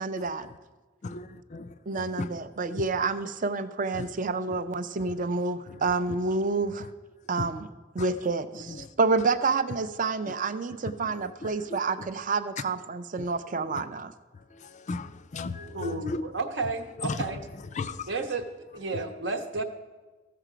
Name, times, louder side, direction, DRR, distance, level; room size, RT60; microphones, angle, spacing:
voice 1, 0.0-0.5 1.9-6.9 7.3-7.7 7.9-14.1, right 4 dB, 45° right, 12 dB, 0.5 m, -29 dB
voice 2, 1.5-2.3 2.8-2.9 4.0-4.1 6.8-6.9 7.4-7.5 8.0-8.1 8.7-8.9 10.8-11.8 13.7-13.8 14.5-16.3 17.0-17.2 17.7-18.1, left 3 dB, 40° left, 14 dB, 0.4 m, -36 dB
voice 3, 15.5-17.4 18.1-18.5 18.7-19.6, right 3 dB, 70° right, 6 dB, 1.0 m, -32 dB
14.5 x 6.6 x 5.0 m, 1.3 s
head